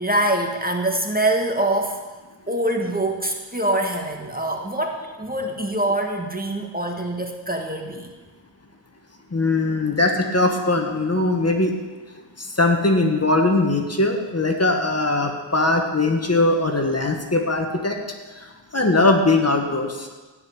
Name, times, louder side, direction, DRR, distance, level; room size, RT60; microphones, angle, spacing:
voice 1, 0.0-2.0 2.5-8.1, right 1 dB, 20° right, 3 dB, 1.6 m, -24 dB
voice 2, 9.3-11.7 12.4-18.0 18.3-18.5 18.7-20.1, left 2 dB, 35° left, 3 dB, 1.9 m, -20 dB
16.5 x 5.6 x 9.7 m, 1.3 s
wide cardioid pair, 85°, 45 cm